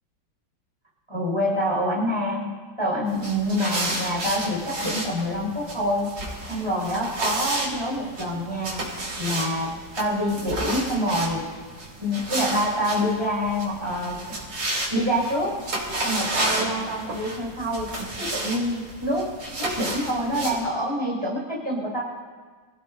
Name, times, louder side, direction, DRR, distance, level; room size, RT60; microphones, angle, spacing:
voice 1, 1.1-2.5 2.8-11.6 12.0-14.2 14.9-15.6 16.0-19.3 19.6-22.0, equal, 15° right, -4 dB, 5.6 m, -26 dB
sound 1, 3.1-20.6, right 1 dB, 65° right, 4.0 m, -32 dB
27.5 x 17.5 x 2.7 m, 1.5 s
omnidirectional pair, 2.1 m